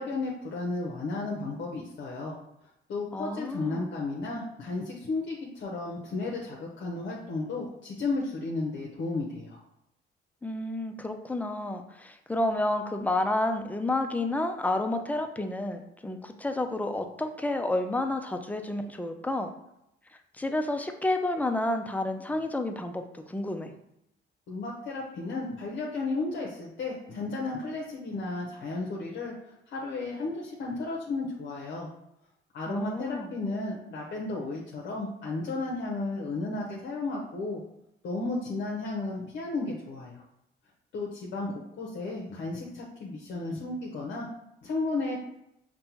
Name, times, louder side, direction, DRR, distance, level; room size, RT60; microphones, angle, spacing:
voice 1, 0.0-2.4 2.9-9.6 24.5-29.3 29.7-31.9 32.5-37.6 38.0-40.2 40.9-44.3 44.6-45.2, left 3 dB, 65° left, -3 dB, 0.7 m, -33 dB
voice 2, 3.1-3.9 10.4-19.5 20.4-23.7 32.7-33.3, left 2 dB, 10° left, 6 dB, 0.4 m, -30 dB
5.2 x 2.1 x 2.9 m, 0.81 s
cardioid pair, 90°, 20 cm